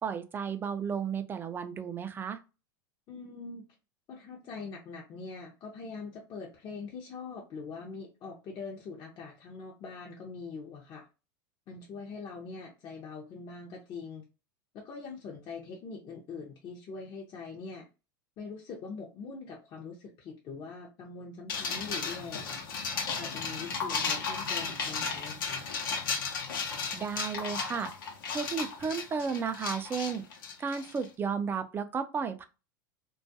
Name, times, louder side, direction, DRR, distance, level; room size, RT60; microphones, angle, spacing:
voice 1, 0.0-2.4 26.9-27.9 28.3-30.2 30.6-32.4, right 6 dB, 20° right, 0.3 m, -33 dB
voice 2, 3.1-3.7 4.1-11.1 11.7-14.2 14.7-17.9 18.4-22.6 23.2-25.7, left 4 dB, 40° left, 0.6 m, -43 dB
sound 1, 21.5-31.0, left 5 dB, 85° left, 0.7 m, -34 dB
2.3 x 2.2 x 2.6 m
hypercardioid pair, 105°, 11 cm